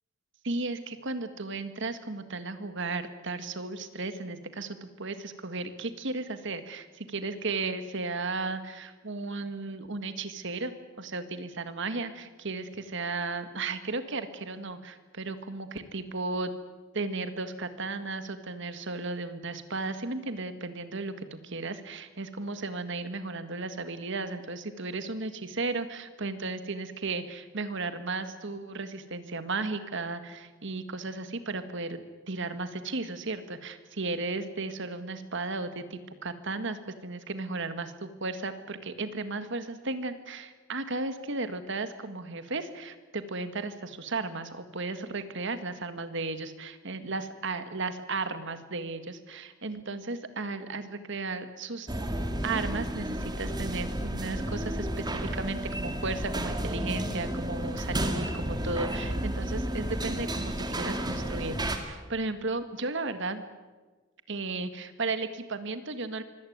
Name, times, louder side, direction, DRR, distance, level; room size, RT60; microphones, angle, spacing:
voice 1, 0.4-16.5 16.9-51.9 52.4-63.4 64.3-66.2, right 3 dB, 65° right, 10 dB, 1.9 m, -35 dB
sound 1, 51.9-61.8, right 1 dB, 20° right, 2.3 m, -32 dB
24.5 x 17.0 x 9.5 m, 1.3 s
head